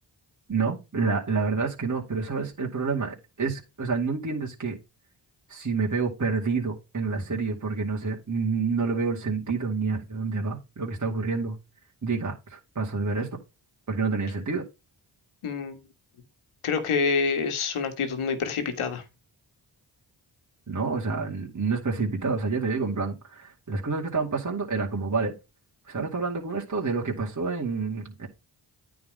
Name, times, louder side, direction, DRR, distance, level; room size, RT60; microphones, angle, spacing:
voice 1, 0.5-4.8 5.5-11.6 12.0-13.3 13.9-14.6 20.7-25.3 25.9-28.3, right 4 dB, 35° right, 2.3 m, -28 dB
voice 2, 15.4-15.8 16.6-19.0, left 5 dB, 80° left, 1.6 m, -27 dB
9.4 x 3.9 x 5.2 m
supercardioid pair, 40°, 49 cm